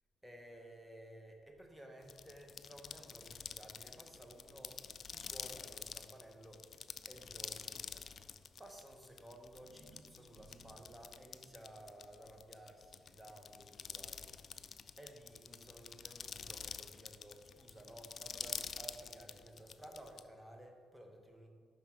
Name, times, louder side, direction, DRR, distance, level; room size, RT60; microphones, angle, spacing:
voice 1, 0.2-6.7 7.1-8.0 8.6-21.5, right 1 dB, 10° right, 2 dB, 1.0 m, -55 dB
sound 1, 2.0-20.2, left 6 dB, 50° left, 0.3 m, -48 dB
sound 2, 9.4-13.7, right 2 dB, 85° right, 1.1 m, -66 dB
5.8 x 5.7 x 4.6 m, 2.2 s
cardioid pair, 90°, 0 cm